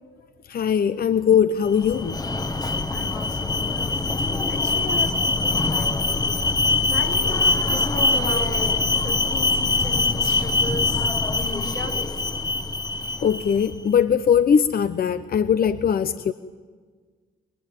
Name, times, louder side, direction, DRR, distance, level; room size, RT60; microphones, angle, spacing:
voice 1, 0.5-2.1 13.2-16.3, left 7 dB, 50° left, 12 dB, 0.9 m, -20 dB
Alarm, 1.7-13.7, left 3 dB, 20° left, 1.2 m, -23 dB
voice 2, 2.9-5.9 6.9-11.1 11.3-12.0, left 3 dB, 85° left, 1 dB, 3.9 m, -36 dB
30.0 x 20.0 x 9.1 m, 1.5 s
cardioid pair, 90°, 20 cm